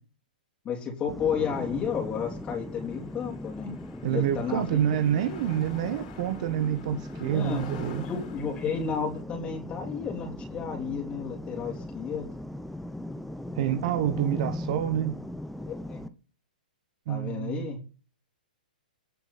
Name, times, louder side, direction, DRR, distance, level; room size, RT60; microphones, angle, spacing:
voice 1, 0.7-3.7 4.1-4.8 7.3-7.6 8.0-12.3 15.6-16.0 17.1-17.8, left 6 dB, 25° left, 3.3 m, -32 dB
sound 1, 1.1-16.1, left 1 dB, ahead, 0.9 m, -38 dB
sound 2, 1.5-9.2, left 6 dB, 55° left, 4.6 m, -51 dB
voice 2, 4.0-8.0 13.5-15.2 17.1-17.7, right 10 dB, 50° right, 1.5 m, -27 dB
19.0 x 6.7 x 4.3 m
hypercardioid pair, 125°, 5 cm